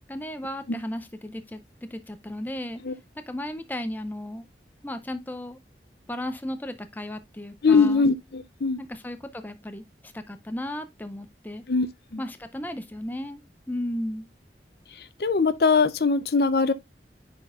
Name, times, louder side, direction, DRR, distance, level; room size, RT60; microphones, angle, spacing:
voice 1, 0.0-1.6 1.9-2.8 3.3-4.5 4.8-5.6 6.1-8.1 8.8-11.6 12.2-13.4 13.7-14.3, left 1 dB, 10° left, 0.5 m, -35 dB
voice 2, 7.6-8.8 11.7-11.9 12.1-12.2 15.2-16.7, left 4 dB, 60° left, 0.6 m, -21 dB
10.0 x 4.1 x 2.4 m
head